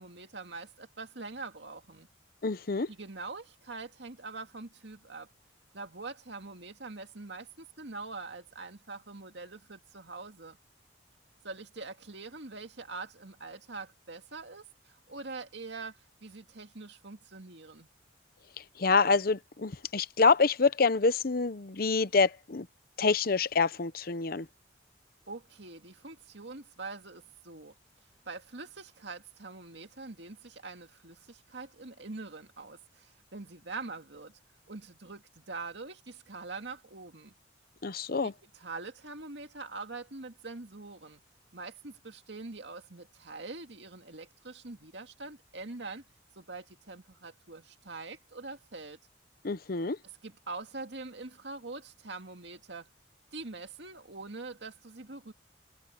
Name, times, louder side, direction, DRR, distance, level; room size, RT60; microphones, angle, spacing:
voice 1, 0.0-2.1 2.9-5.3 5.7-10.6 11.4-17.9 25.3-27.7 28.3-34.4 34.7-37.3 38.2-41.2 41.5-46.0 46.4-49.0 50.2-52.9 53.3-55.3, right 3 dB, 65° right, 2.2 m, -44 dB
voice 2, 2.4-2.9 18.6-22.7 23.0-24.5 37.8-38.3 49.4-50.0, left 4 dB, 50° left, 0.8 m, -27 dB
head